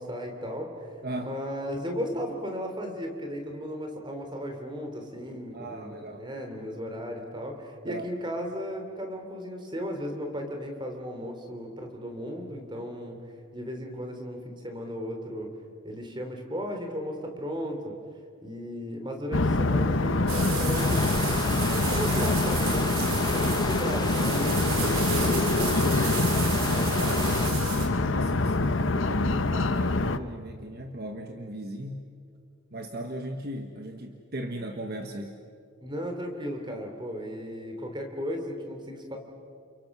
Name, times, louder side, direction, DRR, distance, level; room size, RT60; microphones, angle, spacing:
voice 1, 0.0-0.9 1.2-13.2 13.5-15.5 15.8-17.9 18.4-21.5 21.8-26.1 35.8-39.2, equal, 20° right, 4 dB, 3.2 m, -35 dB
voice 2, 1.0-1.3 5.5-6.3 7.9-8.1 26.5-32.1 32.7-35.4, right 1 dB, 45° right, 5 dB, 1.3 m, -37 dB
sound 1, 19.3-30.2, left 2 dB, 60° left, 0.9 m, -25 dB
sound 2, 20.3-27.9, right 4 dB, 75° right, 4.2 m, -32 dB
sound 3, 20.7-27.5, left 3 dB, 20° left, 0.8 m, -34 dB
30.0 x 29.0 x 6.2 m, 2.3 s
head